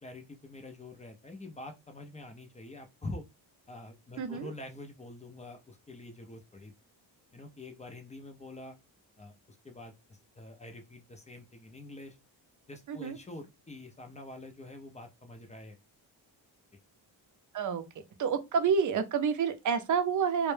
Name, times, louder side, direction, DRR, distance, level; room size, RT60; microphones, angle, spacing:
voice 1, 0.0-3.2 3.7-6.7 7.3-8.8 9.2-12.2 12.7-15.8, left 2 dB, 15° left, 0.3 m, -46 dB
voice 2, 4.2-4.5 12.9-13.2 17.5-17.8 18.2-20.5, right 6 dB, 45° right, 0.5 m, -28 dB
2.1 x 2.0 x 3.1 m
cardioid pair, 105°, 46 cm